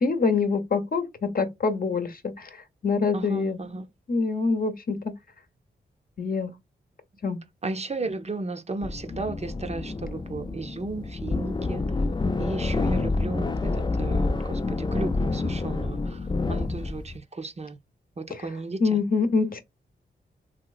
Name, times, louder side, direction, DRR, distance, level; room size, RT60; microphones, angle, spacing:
voice 1, 0.0-2.5 2.8-3.6 4.1-5.2 6.2-6.5 7.2-7.4 18.8-19.6, left 4 dB, 50° left, 0.8 m, -25 dB
voice 2, 3.1-3.9 7.6-11.8 12.4-17.8 18.2-19.0, right 3 dB, 35° right, 0.6 m, -34 dB
sound 1, 8.8-17.2, left 3 dB, 25° left, 0.5 m, -28 dB
3.1 x 2.9 x 2.4 m
cardioid pair, 60°, 19 cm